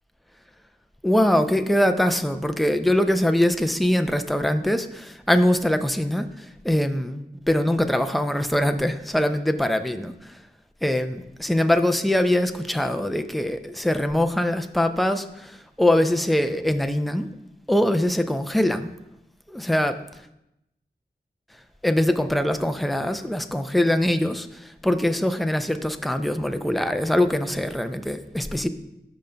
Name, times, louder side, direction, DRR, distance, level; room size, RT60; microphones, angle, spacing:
voice 1, 1.0-10.3 10.8-17.3 17.7-18.9 19.5-20.0 21.8-28.7, left 1 dB, ahead, 8 dB, 0.4 m, -23 dB
14.0 x 5.2 x 2.3 m, 0.87 s
wide cardioid pair, 55°, 18 cm